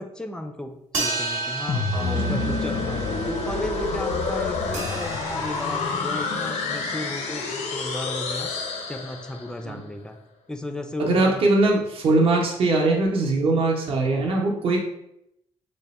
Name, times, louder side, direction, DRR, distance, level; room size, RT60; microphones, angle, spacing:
voice 1, 0.0-1.8 2.1-8.5 8.9-10.2 10.5-11.5, left 1 dB, 5° left, 5 dB, 0.3 m, -35 dB
sound 1, 0.9-6.2, right 3 dB, 90° right, 1.1 m, -33 dB
sound 2, 1.7-9.6, left 4 dB, 85° left, 0.6 m, -28 dB
voice 2, 1.9-2.4 9.6-9.8 11.0-14.8, right 2 dB, 55° right, -1 dB, 0.7 m, -21 dB
3.3 x 2.1 x 4.1 m, 0.80 s
cardioid pair, 130°, 12 cm